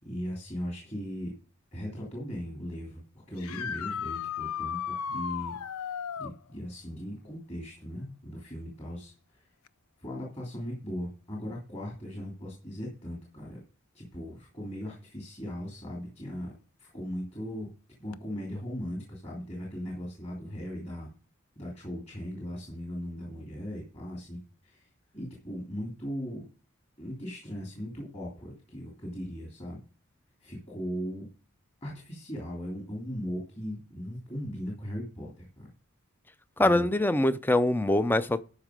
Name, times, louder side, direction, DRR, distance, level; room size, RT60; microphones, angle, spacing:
voice 1, 0.0-1.3 1.7-3.0 3.3-9.5 10.0-13.6 13.9-16.5 16.8-17.7 18.0-21.1 21.6-26.4 27.0-29.8 30.4-31.3 31.8-35.7 36.6-36.9, equal, 30° left, 2.8 m, -38 dB
sound 1, 3.4-6.4 9.7-9.8 11.8-11.9 18.1-18.2, left 7 dB, 80° left, 0.5 m, -35 dB
voice 2, 36.6-38.4, left 1 dB, 10° left, 0.4 m, -24 dB
12.5 x 5.3 x 5.0 m
head